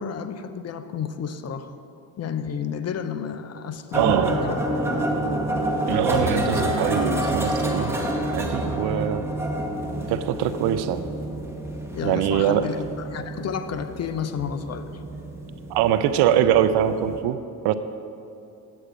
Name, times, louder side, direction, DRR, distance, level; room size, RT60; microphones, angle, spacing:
voice 1, 0.0-1.7 2.2-4.6 5.0-5.2 12.0-15.0, left 7 dB, 35° left, 10 dB, 0.6 m, -31 dB
sound 1, 3.9-17.2, right 1 dB, 5° right, 1.4 m, -28 dB
voice 2, 3.9-4.4 5.9-9.2 10.1-11.0 12.0-12.7 15.7-17.7, right 10 dB, 65° right, 12 dB, 0.6 m, -23 dB
8.8 x 7.8 x 5.1 m, 2.7 s
supercardioid pair, 75°, 43 cm